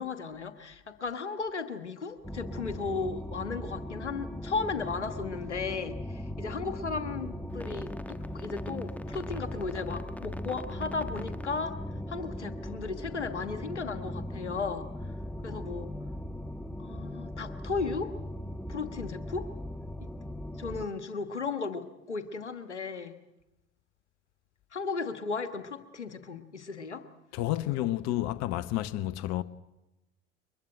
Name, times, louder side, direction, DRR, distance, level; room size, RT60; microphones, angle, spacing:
voice 1, 0.0-11.8 12.1-14.9 15.4-15.9 16.8-18.1 18.7-19.5 20.0-20.1 20.5-23.2 24.7-27.0, left 4 dB, 90° left, 1.3 m, -35 dB
sound 1, 2.2-20.9, left 1 dB, 5° left, 1.2 m, -39 dB
voice 2, 27.3-29.4, left 14 dB, 50° left, 1.0 m, -30 dB
22.5 x 22.0 x 8.9 m
figure-of-eight pair, 65°, 34 cm